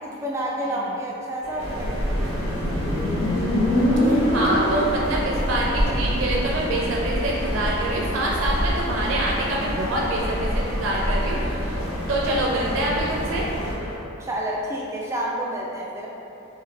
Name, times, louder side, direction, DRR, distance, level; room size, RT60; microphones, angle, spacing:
voice 1, 0.0-2.8 14.2-16.1, right 1 dB, 15° right, -3 dB, 0.3 m, -30 dB
sound 1, 1.4-14.0, equal, 25° left, 0.9 m, -38 dB
sound 2, 1.6-13.8, equal, 80° left, 1.4 m, -28 dB
Motorcycle, 1.8-5.3, left 1 dB, 60° left, 0.5 m, -24 dB
voice 2, 4.1-11.8 12.1-13.5, right 1 dB, 70° right, -3 dB, 0.5 m, -25 dB
4.9 x 2.6 x 3.2 m, 2.9 s
head